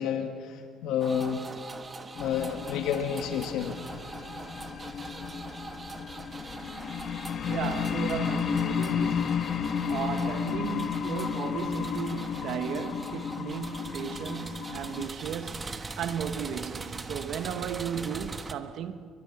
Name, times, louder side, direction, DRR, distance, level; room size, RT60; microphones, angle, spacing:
voice 1, 0.0-1.4 2.2-3.8, left 8 dB, 80° left, 1.7 m, -30 dB
sound 1, 1.0-18.5, right 3 dB, 20° right, 1.4 m, -42 dB
sound 2, 2.1-15.1, left 7 dB, 45° left, 1.3 m, -33 dB
voice 2, 7.5-9.4 9.9-19.1, right 8 dB, 65° right, 1.2 m, -35 dB
29.5 x 23.5 x 6.0 m
cardioid pair, 140°, 0 cm